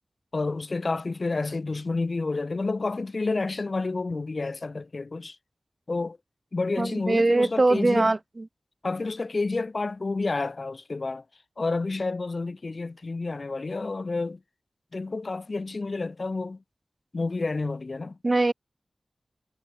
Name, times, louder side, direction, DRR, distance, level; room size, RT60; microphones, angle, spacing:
voice 1, 0.3-5.4 5.9-6.2 6.5-8.1 8.8-11.2 11.6-14.4 14.9-16.6 17.1-18.2, left 3 dB, 55° left, 1.9 m, -29 dB
voice 2, 6.8-8.5 18.2-18.5, right 2 dB, 40° right, 4.1 m, -22 dB
wide cardioid pair, 80°, 0 cm